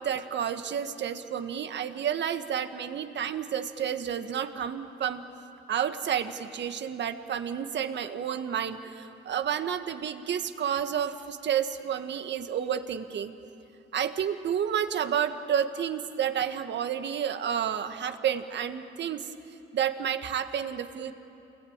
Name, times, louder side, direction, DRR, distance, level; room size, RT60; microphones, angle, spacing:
voice 1, 0.0-5.2 5.7-13.3 13.9-19.3 19.7-21.1, right 9 dB, 65° right, 8 dB, 1.6 m, -30 dB
29.0 x 21.0 x 8.8 m, 2.8 s
cardioid pair, 90°, 20 cm